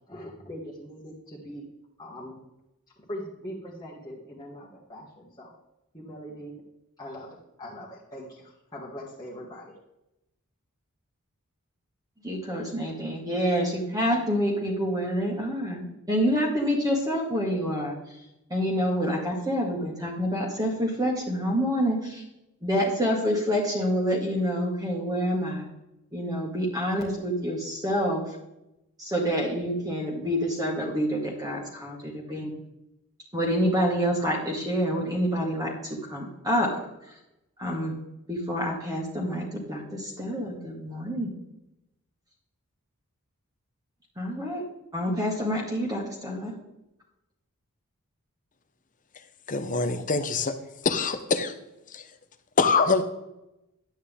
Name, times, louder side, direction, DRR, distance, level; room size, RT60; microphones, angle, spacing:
voice 1, 0.1-1.7 2.0-2.4 3.0-5.5 5.9-6.7 7.0-9.8, equal, 20° left, -6 dB, 1.7 m, -41 dB
voice 2, 12.2-18.0 18.5-22.2 22.6-25.7 26.1-28.2 29.0-32.5 33.3-36.7 37.6-38.0 38.3-41.3 44.2-44.6 44.9-46.5, equal, 15° right, -1 dB, 1.9 m, -27 dB
voice 3, 49.5-50.5 50.8-51.5 51.9-52.0 52.6-53.0, left 4 dB, 35° left, 9 dB, 0.8 m, -24 dB
11.0 x 9.2 x 3.6 m, 0.89 s
head